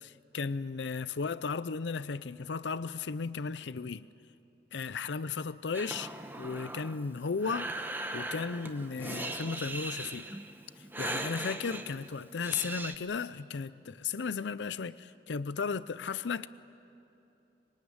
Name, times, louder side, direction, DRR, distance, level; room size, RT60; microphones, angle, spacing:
voice 1, 0.0-4.1 4.7-10.4 10.8-16.5, left 5 dB, 85° left, 0.6 m, -35 dB
Breathing, 5.7-13.0, right 2 dB, 10° right, 1.0 m, -39 dB
25.0 x 23.0 x 9.5 m
head